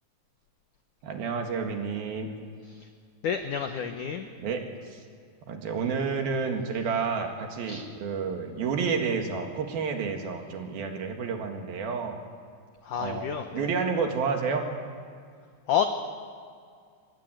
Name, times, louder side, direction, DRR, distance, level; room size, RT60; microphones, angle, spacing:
voice 1, 1.0-2.3 4.4-5.0 5.5-12.2 13.0-13.3 13.5-14.7, right 5 dB, 60° right, 4 dB, 3.5 m, -30 dB
voice 2, 3.2-4.3 7.7-7.9 12.8-13.7 15.7-15.8, left 8 dB, 80° left, 6 dB, 1.8 m, -29 dB
24.5 x 19.5 x 9.3 m, 2.2 s
omnidirectional pair, 5.1 m